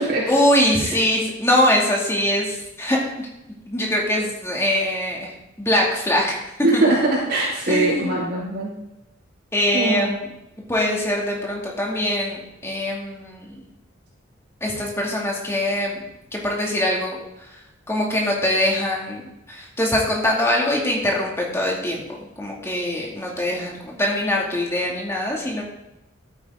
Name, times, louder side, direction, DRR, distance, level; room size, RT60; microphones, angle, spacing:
voice 1, 0.3-3.1 3.7-6.8 7.7-8.2 9.5-10.3 10.7-13.6 14.6-16.0 16.3-17.2 17.9-19.2 19.5-25.6, left 1 dB, 15° left, -2 dB, 2.4 m, -23 dB
voice 2, 6.6-8.7 9.7-10.0, right 2 dB, 55° right, -6 dB, 4.2 m, -21 dB
13.0 x 9.2 x 3.8 m, 0.89 s
head